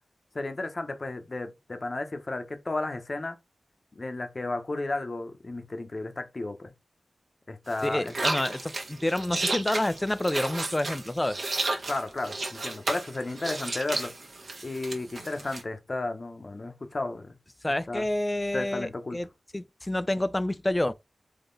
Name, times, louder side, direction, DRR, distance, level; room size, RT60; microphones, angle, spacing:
voice 1, 0.3-3.4 3.9-6.7 7.5-8.2 11.9-14.1 14.6-17.4 17.9-18.1 18.5-19.2, left 2 dB, 40° left, 0.8 m, -33 dB
sound 1, 7.7-15.6, right 2 dB, 55° right, 1.1 m, -33 dB
voice 2, 7.8-11.4 17.6-19.3 19.5-20.9, left 1 dB, 15° left, 0.3 m, -28 dB
3.7 x 3.4 x 3.9 m
wide cardioid pair, 110°, 0 cm